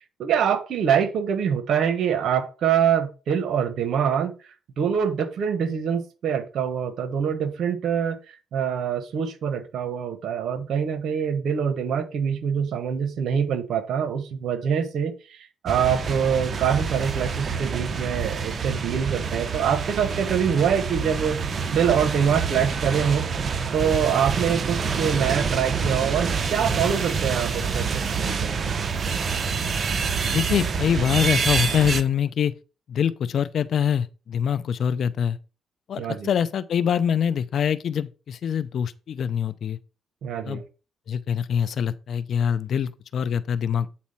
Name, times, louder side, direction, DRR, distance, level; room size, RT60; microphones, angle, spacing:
voice 1, 0.2-23.2 23.7-28.5 36.0-36.3 40.2-40.6, right 7 dB, 70° right, 1.3 m, -25 dB
sound 1, 15.7-32.0, right 5 dB, 45° right, 0.9 m, -27 dB
voice 2, 30.3-32.5 32.9-35.4 35.9-39.8 40.5-40.6 41.1-43.9, left 8 dB, 60° left, 0.6 m, -24 dB
8.5 x 4.3 x 5.6 m
cardioid pair, 90°, 0 cm